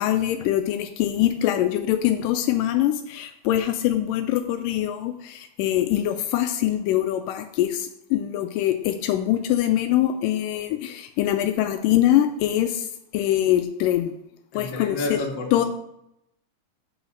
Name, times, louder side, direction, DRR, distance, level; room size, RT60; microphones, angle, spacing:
voice 1, 0.0-12.9 13.1-14.1 14.5-15.2 15.5-15.6, left 12 dB, 85° left, 8 dB, 2.2 m, -23 dB
voice 2, 14.5-15.7, left 2 dB, 55° left, 1 dB, 2.4 m, -30 dB
8.1 x 5.6 x 6.3 m, 0.80 s
omnidirectional pair, 3.8 m